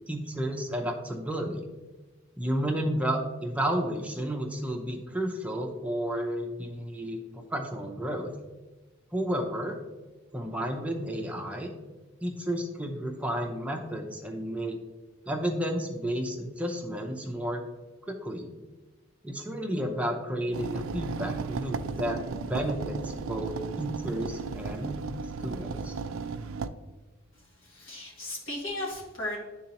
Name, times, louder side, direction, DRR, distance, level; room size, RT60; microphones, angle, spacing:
voice 1, 0.1-1.7 2.4-8.3 9.1-9.8 10.3-11.7 12.2-14.8 15.3-17.6 18.1-18.5 19.2-25.0 25.4-25.9, equal, 5° right, 1 dB, 0.5 m, -32 dB
sound 1, 20.5-26.7, right 5 dB, 85° right, 0.4 m, -35 dB
voice 2, 27.6-29.4, left 1 dB, 75° left, -5 dB, 1.8 m, -36 dB
10.5 x 3.8 x 2.9 m, 1.2 s
head